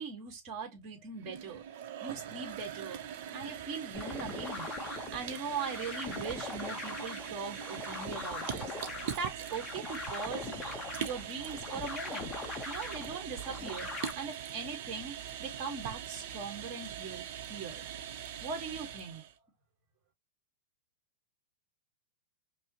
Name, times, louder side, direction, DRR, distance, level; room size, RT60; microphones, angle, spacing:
voice 1, 0.0-1.6 2.0-3.0 3.3-8.7 9.0-10.5 11.0-13.9 14.1-17.8 18.4-19.2, right 5 dB, 30° right, 1.5 m, -40 dB
sound 1, 1.1-19.3, right 9 dB, 50° right, 0.7 m, -42 dB
sound 2, 3.9-14.1, left 4 dB, 15° left, 0.6 m, -41 dB
5.3 x 2.0 x 2.9 m
supercardioid pair, 155°, 0 cm